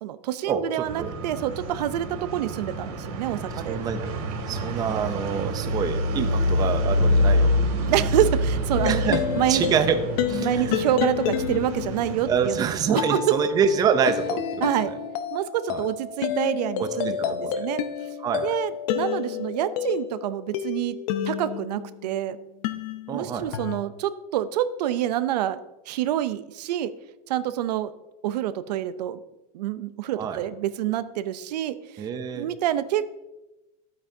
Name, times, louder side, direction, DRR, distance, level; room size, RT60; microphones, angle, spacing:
voice 1, 0.0-3.8 6.2-6.4 7.9-9.7 10.4-13.6 14.6-14.9 15.3-17.8 18.4-21.0 21.2-22.4 23.1-25.6 25.9-26.9 27.3-27.9 28.2-29.2 29.5-31.8 32.3-33.1, right 12 dB, 85° right, 13 dB, 0.6 m, -27 dB
sound 1, 0.8-12.9, left 1 dB, 55° right, 2.5 m, -27 dB
voice 2, 3.7-4.0 4.5-7.5 8.8-9.2 9.5-10.0 10.3-10.9 12.3-14.9 15.7-15.8 16.8-17.7 18.2-18.5 23.1-23.5 30.2-30.4 32.0-32.5, right 7 dB, 20° right, 8 dB, 0.5 m, -26 dB
sound 2, 8.7-22.1 22.6-23.8, left 9 dB, 65° left, 0.7 m, -30 dB
11.5 x 8.7 x 2.7 m, 0.99 s
supercardioid pair, 155°, 20 cm